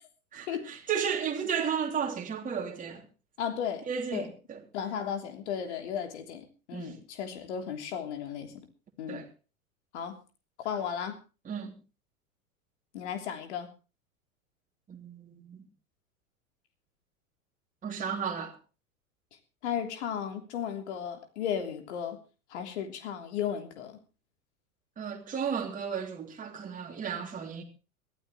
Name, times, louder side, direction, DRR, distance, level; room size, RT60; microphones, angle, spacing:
voice 1, 0.3-3.1 3.9-4.6 6.7-7.0 9.1-9.3 11.4-11.7 14.9-15.7 17.8-18.6 25.0-27.6, right 7 dB, 20° right, 3.2 m, -34 dB
voice 2, 3.4-3.9 4.1-4.3 4.7-8.7 9.0-9.2 9.9-10.2 10.6-11.2 12.9-13.7 19.6-22.2 22.5-24.0, left 8 dB, 50° left, 3.3 m, -35 dB
23.0 x 14.5 x 3.1 m
figure-of-eight pair, 90°, 43 cm